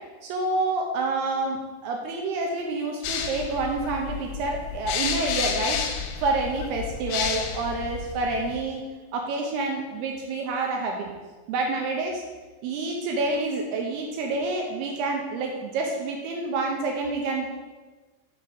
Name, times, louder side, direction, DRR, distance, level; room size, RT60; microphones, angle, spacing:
voice 1, 0.2-5.8 6.2-8.8 9.1-11.1 11.5-12.2 12.6-17.5, right 3 dB, 80° right, 1 dB, 2.4 m, -28 dB
sound 1, 3.0-8.6, left 7 dB, 85° left, 3.0 m, -31 dB
6.8 x 5.0 x 6.1 m, 1.3 s
omnidirectional pair, 5.2 m